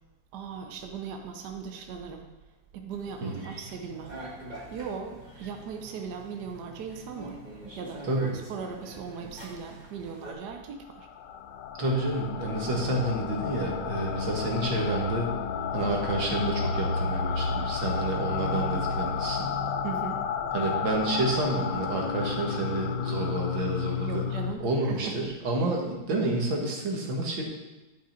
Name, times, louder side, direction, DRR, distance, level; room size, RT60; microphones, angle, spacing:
voice 1, 0.3-2.3 2.7-4.2 4.7-7.4 7.8-8.0 8.5-11.1 19.8-20.2 24.1-25.3, right 6 dB, 65° right, 4 dB, 1.3 m, -38 dB
sound 1, 3.0-10.3, right 1 dB, 25° right, 1.7 m, -45 dB
sound 2, 11.0-24.5, left 6 dB, 70° left, 1.2 m, -31 dB
voice 2, 11.8-15.3 15.7-19.5 20.5-24.2 24.6-27.4, right 2 dB, 85° right, 0 dB, 2.3 m, -29 dB
11.5 x 5.6 x 4.4 m, 1.1 s
omnidirectional pair, 2.1 m